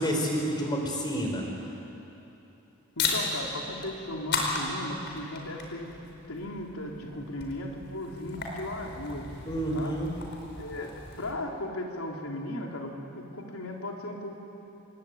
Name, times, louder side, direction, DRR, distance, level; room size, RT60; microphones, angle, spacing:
voice 1, 0.0-1.4 9.4-10.1, equal, 20° left, 1 dB, 4.8 m, -29 dB
voice 2, 3.0-9.3 9.7-10.0 10.5-14.3, left 1 dB, 85° left, 0 dB, 3.6 m, -37 dB
sound 1, 3.0-11.3, left 3 dB, 50° left, 4.5 m, -36 dB
25.5 x 21.5 x 9.4 m, 3.0 s
head